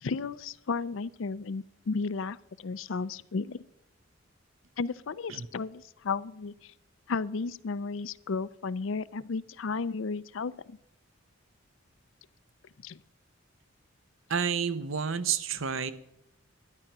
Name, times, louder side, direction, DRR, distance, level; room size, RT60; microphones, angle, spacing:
voice 1, 0.0-3.6 4.8-6.7 7.1-10.8 12.8-13.0, left 4 dB, 70° left, 18 dB, 0.5 m, -34 dB
voice 2, 14.3-15.9, right 7 dB, 75° right, 13 dB, 0.8 m, -30 dB
12.0 x 10.0 x 6.0 m, 0.80 s
head